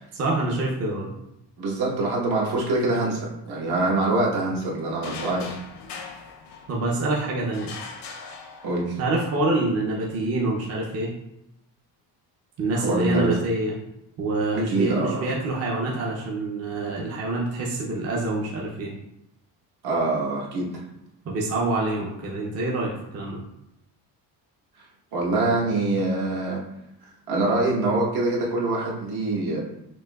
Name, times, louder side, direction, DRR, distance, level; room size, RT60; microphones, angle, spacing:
voice 1, 0.1-1.1 6.7-7.7 9.0-11.1 12.6-13.7 14.2-18.9 21.2-23.4, right 2 dB, 40° right, -4 dB, 0.6 m, -26 dB
voice 2, 1.6-5.6 8.6-9.0 12.7-13.4 14.5-15.3 19.8-20.8 25.1-26.6 27.3-29.6, right 2 dB, 65° right, -4 dB, 1.2 m, -24 dB
sound 1, 5.0-7.0 7.5-9.1, left 5 dB, 80° left, 0.7 m, -40 dB
6.0 x 2.6 x 2.3 m, 0.84 s
cardioid pair, 170°, 41 cm